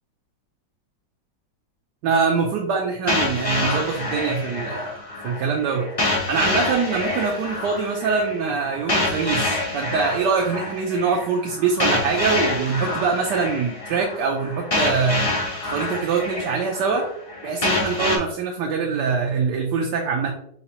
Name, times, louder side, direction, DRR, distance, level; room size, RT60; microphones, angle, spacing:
voice 1, 2.0-4.9 5.2-5.9 6.3-15.3 15.6-17.1 17.4-20.3, right 5 dB, 70° right, 0 dB, 1.2 m, -23 dB
sound 1, 3.1-18.2, left 2 dB, 50° left, 0.3 m, -27 dB
4.3 x 3.9 x 2.8 m, 0.71 s
omnidirectional pair, 2.0 m